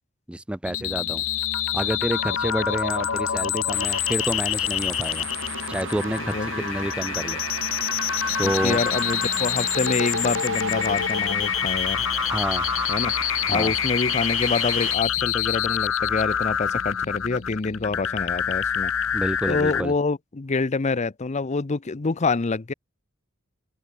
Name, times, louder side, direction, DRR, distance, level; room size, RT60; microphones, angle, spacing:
voice 1, 0.3-1.2 1.7-5.3 5.7-7.4 8.4-8.8 12.3-12.7 13.5-13.7 19.1-19.9, right 1 dB, 5° right, 0.4 m, -29 dB
sound 1, 0.7-19.8, left 9 dB, 75° left, 1.1 m, -26 dB
sound 2, 3.7-15.0, right 7 dB, 65° right, 1.0 m, -35 dB
voice 2, 6.2-6.7 8.4-12.0 12.9-13.1 13.5-18.9 19.5-22.7, left 4 dB, 35° left, 0.6 m, -26 dB
head